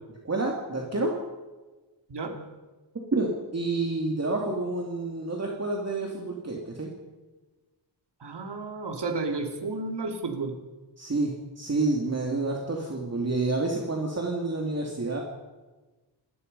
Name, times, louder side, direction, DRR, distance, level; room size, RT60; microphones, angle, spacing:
voice 1, 0.2-1.1 3.1-6.9 11.0-15.2, right 2 dB, 35° right, -1 dB, 2.8 m, -29 dB
voice 2, 8.2-10.5, right 3 dB, 60° right, 4 dB, 3.1 m, -32 dB
28.0 x 20.5 x 5.5 m, 1.2 s
wide cardioid pair, 155°, 45 cm